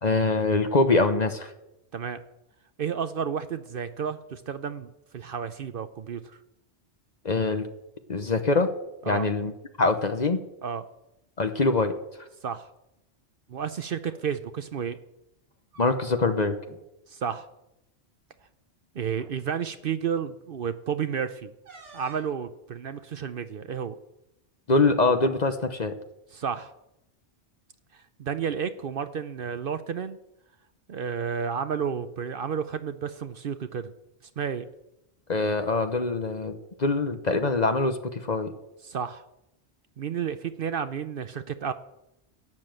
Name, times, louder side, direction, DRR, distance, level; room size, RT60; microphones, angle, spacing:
voice 1, 0.0-1.5 7.2-7.7 8.1-8.7 9.1-9.5 9.8-10.4 11.4-11.9 15.8-16.6 24.7-25.9 35.3-38.5, left 3 dB, 40° left, 8 dB, 1.0 m, -24 dB
voice 2, 2.8-6.2 9.0-9.3 10.6-10.8 12.4-12.7 13.5-15.0 17.1-17.5 18.9-21.5 21.9-24.0 26.3-26.7 27.9-30.2 30.9-33.9 34.4-34.7 38.8-39.2 40.0-41.7, right 7 dB, 60° right, 11 dB, 0.8 m, -31 dB
sound 1, 14.0-14.2 15.4-16.3 16.6-16.8 17.2-17.4 18.4-18.5 19.1-19.4 21.6-22.4, right 2 dB, 85° right, 3.8 m, -50 dB
12.0 x 9.3 x 7.7 m, 0.89 s
omnidirectional pair, 1.2 m